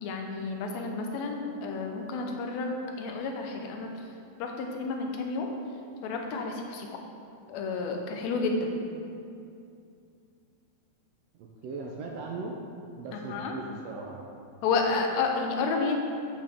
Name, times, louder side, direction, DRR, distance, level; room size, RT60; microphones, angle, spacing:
voice 1, 0.0-3.9 4.4-5.5 6.0-6.9 7.5-8.7 13.1-13.5 14.6-16.0, left 4 dB, 70° left, 2 dB, 2.0 m, -30 dB
voice 2, 11.4-12.5 13.0-14.2, right 3 dB, 75° right, 0 dB, 1.6 m, -38 dB
8.6 x 8.0 x 3.6 m, 2.5 s
omnidirectional pair, 3.4 m